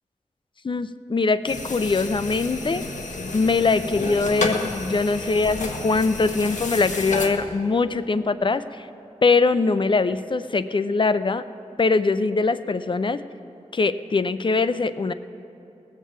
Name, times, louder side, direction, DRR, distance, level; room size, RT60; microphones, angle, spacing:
voice 1, 0.6-2.8 3.3-8.9 9.2-11.4 11.8-13.2 13.7-15.1, left 4 dB, 40° left, 13 dB, 0.4 m, -22 dB
sound 1, 1.5-7.3, left 2 dB, 85° left, 1.2 m, -31 dB
18.0 x 7.4 x 7.3 m, 2.7 s
wide cardioid pair, 95°, 12 cm